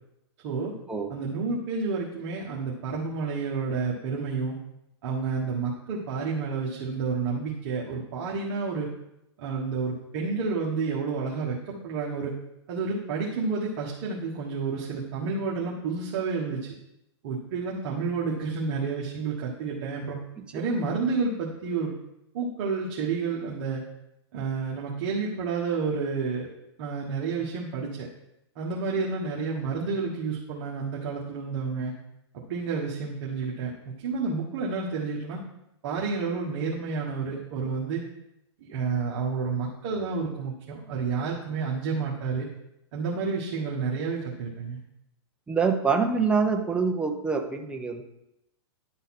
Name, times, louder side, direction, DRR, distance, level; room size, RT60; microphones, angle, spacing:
voice 1, 1.1-4.6 5.0-8.9 9.4-12.3 12.7-16.7 17.2-20.2 20.5-21.9 22.3-23.8 24.3-26.5 26.8-28.1 28.5-31.9 32.3-35.4 35.8-38.0 38.7-42.5 42.9-44.8, right 4 dB, 50° right, -3 dB, 1.4 m, -30 dB
voice 2, 45.5-48.0, right 5 dB, 5° right, 3 dB, 0.7 m, -25 dB
10.5 x 4.0 x 4.2 m, 0.85 s
hypercardioid pair, 140°, 15 cm